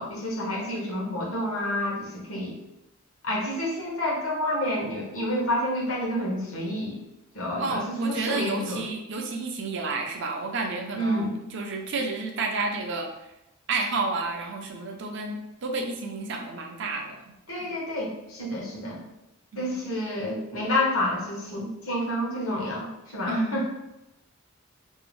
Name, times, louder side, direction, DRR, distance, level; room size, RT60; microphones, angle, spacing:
voice 1, 0.0-2.6 3.2-7.0 7.3-8.8 10.9-11.3 17.5-19.0 19.6-23.6, left 1 dB, 80° left, -3 dB, 0.9 m, -29 dB
voice 2, 7.6-13.3 13.7-17.7 19.5-19.8 23.2-23.6, right 3 dB, 60° right, 2 dB, 0.4 m, -31 dB
2.6 x 2.0 x 3.0 m, 0.88 s
head